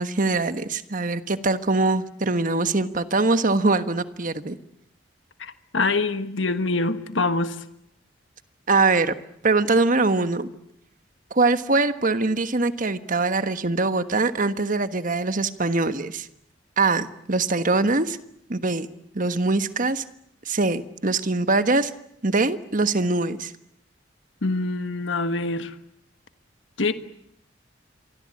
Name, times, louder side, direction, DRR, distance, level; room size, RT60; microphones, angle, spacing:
voice 1, 0.0-4.6 8.7-9.1 9.4-10.5 11.3-16.3 16.8-18.2 18.5-18.9 19.1-20.0 20.5-21.9 22.2-23.5, right 3 dB, 45° right, 11 dB, 1.4 m, -22 dB
voice 2, 5.4-7.6 24.4-25.7 26.8-26.9, left 3 dB, 90° left, 10 dB, 1.5 m, -25 dB
27.5 x 24.0 x 8.7 m, 0.76 s
head